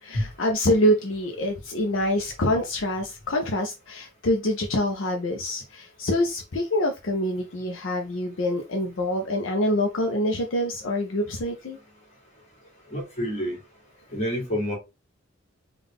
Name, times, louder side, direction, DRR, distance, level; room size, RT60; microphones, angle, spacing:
voice 1, 0.0-11.8, left 1 dB, 70° left, 2 dB, 0.6 m, -25 dB
voice 2, 12.9-13.6 14.1-14.8, equal, 35° left, 0 dB, 1.6 m, -28 dB
3.8 x 2.3 x 3.5 m, 0.25 s
head